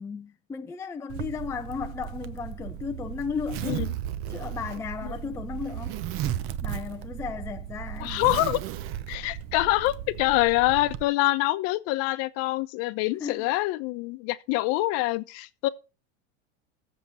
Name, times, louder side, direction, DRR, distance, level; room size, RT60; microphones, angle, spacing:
voice 1, 0.0-3.9 4.3-6.0 6.6-8.3 13.2-13.5, left 6 dB, 10° left, 0.5 m, -35 dB
Zipper (clothing), 1.1-11.0, right 11 dB, 40° right, 0.8 m, -35 dB
voice 2, 8.0-8.6 9.1-15.7, left 18 dB, 45° left, 0.9 m, -25 dB
7.8 x 7.4 x 7.6 m
supercardioid pair, 145°, 33 cm